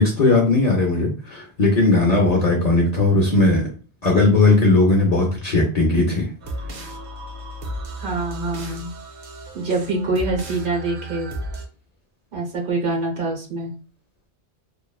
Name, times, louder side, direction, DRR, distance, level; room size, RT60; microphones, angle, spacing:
voice 1, 0.0-3.7 4.0-6.3, left 2 dB, 50° left, -1 dB, 0.5 m, -17 dB
sound 1, 6.4-11.7, right 1 dB, 85° right, 0.9 m, -34 dB
voice 2, 8.0-8.9 9.5-11.3 12.3-13.7, right 2 dB, 55° right, 1 dB, 0.8 m, -25 dB
3.0 x 2.1 x 2.2 m, 0.37 s
omnidirectional pair, 1.1 m